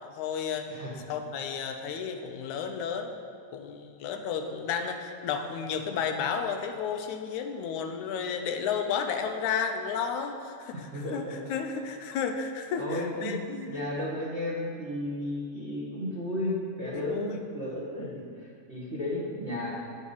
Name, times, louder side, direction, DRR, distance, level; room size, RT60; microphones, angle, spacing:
voice 1, 0.0-0.7 1.1-3.2 3.5-10.8 11.1-13.7 16.9-17.3, left 6 dB, 90° left, 6 dB, 2.2 m, -32 dB
voice 2, 0.7-1.0 10.7-11.4 12.8-19.7, left 1 dB, 30° right, -5 dB, 1.4 m, -34 dB
15.0 x 5.3 x 5.5 m, 2.3 s
omnidirectional pair, 3.3 m